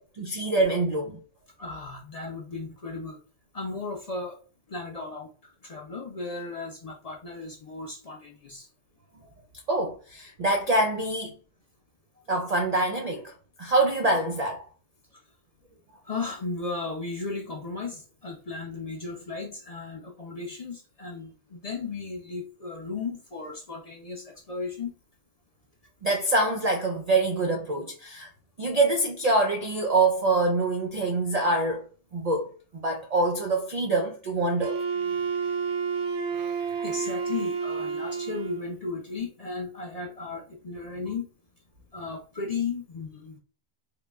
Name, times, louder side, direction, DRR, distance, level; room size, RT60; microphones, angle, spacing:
voice 1, 0.2-1.2 9.7-11.3 12.3-13.3 13.6-14.7 26.0-28.3 28.6-34.8, right 2 dB, 90° right, 0.3 m, -25 dB
voice 2, 1.6-3.2 3.5-4.4 4.7-8.7 16.0-24.9 35.0-35.3 36.4-41.3 41.9-43.4, left 4 dB, 45° left, 0.5 m, -35 dB
Wind instrument woodwind instrument, 34.6-38.7, right 6 dB, 65° right, 0.8 m, -30 dB
3.8 x 2.1 x 3.3 m
omnidirectional pair, 1.3 m